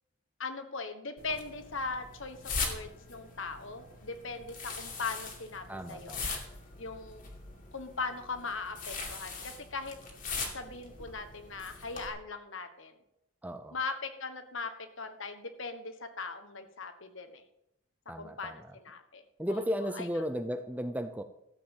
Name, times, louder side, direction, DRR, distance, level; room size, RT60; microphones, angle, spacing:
voice 1, 0.4-2.4 2.6-6.2 6.8-7.3 7.7-10.0 10.5-13.0 13.7-17.4 18.2-19.2 19.5-19.6 19.9-20.0, left 4 dB, 60° left, 8 dB, 1.4 m, -39 dB
sound 1, 1.2-12.1, left 4 dB, 40° left, 2.4 m, -41 dB
voice 2, 5.7-6.4 13.4-13.8 18.1-18.8 19.4-21.2, equal, 5° right, 9 dB, 0.6 m, -35 dB
13.5 x 7.6 x 7.3 m, 0.82 s
head